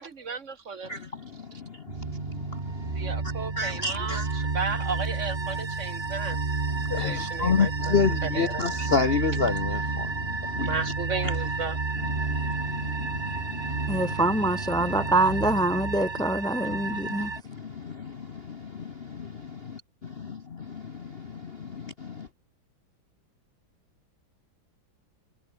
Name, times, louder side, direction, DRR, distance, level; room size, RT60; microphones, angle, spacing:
voice 1, 0.0-0.9 2.9-6.4 7.0-8.6 10.6-11.8, right 5 dB, 40° right, 1.5 m, -34 dB
voice 2, 0.8-3.1 3.6-4.4 6.7-10.9 11.2-11.3 12.0-15.1 16.2-16.3 16.7-22.3, left 5 dB, 45° left, 0.8 m, -31 dB
sound 1, 1.9-17.4, right 3 dB, 25° right, 1.8 m, -31 dB
voice 3, 13.9-17.3, right 2 dB, 5° left, 0.3 m, -25 dB
omnidirectional pair, 2.2 m